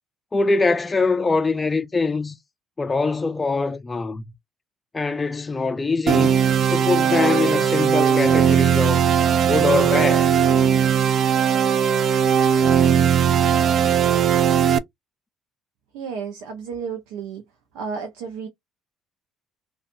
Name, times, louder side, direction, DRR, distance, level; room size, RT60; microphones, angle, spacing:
voice 1, 0.3-2.4 2.8-4.3 4.9-6.3 6.7-9.0 9.4-10.3, left 3 dB, 25° left, 0.4 m, -23 dB
sound 1, 6.1-14.8, right 8 dB, 55° right, 0.3 m, -18 dB
voice 2, 15.9-17.4 17.7-18.5, right 6 dB, 85° right, 0.7 m, -32 dB
2.4 x 2.4 x 2.6 m
supercardioid pair, 75°, 0 cm